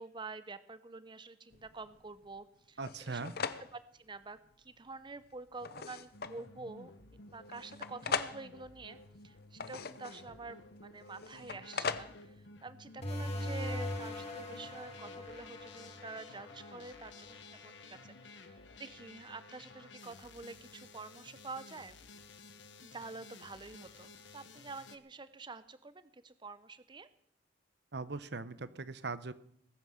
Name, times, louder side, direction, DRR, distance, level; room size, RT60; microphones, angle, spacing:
voice 1, 0.0-2.8 3.1-3.4 3.7-6.9 7.3-9.0 9.2-17.4 17.6-22.0 22.8-27.1, right 3 dB, 25° right, 14 dB, 0.7 m, -48 dB
sound 1, 1.5-2.4 2.8-3.8 4.5-4.6 5.2-6.5 7.5-8.5 9.3-10.4 11.1-12.3, left 5 dB, 55° left, 0.8 m, -40 dB
voice 2, 2.8-3.3 27.9-29.3, right 3 dB, 60° right, 14 dB, 0.9 m, -40 dB
sound 2, 6.1-25.0, left 3 dB, 70° left, 1.3 m, -54 dB
sound 3, 13.0-18.2, left 1 dB, 35° left, 2.7 m, -41 dB
20.0 x 9.4 x 6.5 m, 0.68 s
head